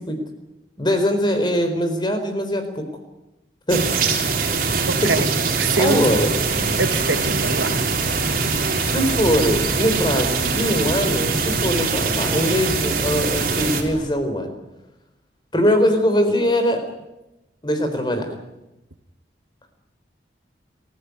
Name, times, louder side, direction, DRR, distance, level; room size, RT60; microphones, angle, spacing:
voice 1, 0.8-2.9 3.7-3.9 5.0-5.1 5.8-6.3 8.8-14.5 15.5-16.9 17.6-18.3, equal, 25° left, 7 dB, 4.3 m, -21 dB
sound 1, 3.7-13.8, right 4 dB, 50° right, 4.0 m, -22 dB
voice 2, 4.9-5.3 5.6-6.0 6.8-7.8, right 3 dB, 85° right, 11 dB, 1.3 m, -24 dB
sound 2, 5.7-14.1, equal, 40° left, 3.6 m, -36 dB
27.0 x 15.5 x 9.7 m, 0.98 s
head